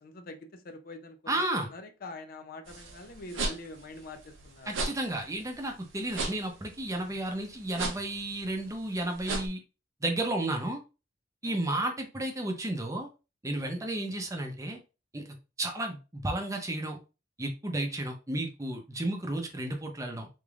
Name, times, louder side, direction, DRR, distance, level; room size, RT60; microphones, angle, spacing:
voice 1, 0.0-4.9 11.4-11.6 13.8-13.9, left 2 dB, 50° left, 0.5 m, -45 dB
voice 2, 1.3-1.7 4.7-9.6 10.0-10.8 11.4-13.1 13.4-14.8 15.1-15.2 15.6-17.0 17.4-20.3, right 1 dB, 15° right, 0.7 m, -32 dB
sound 1, 2.7-9.5, right 3 dB, 75° right, 0.8 m, -37 dB
3.6 x 3.4 x 2.4 m
head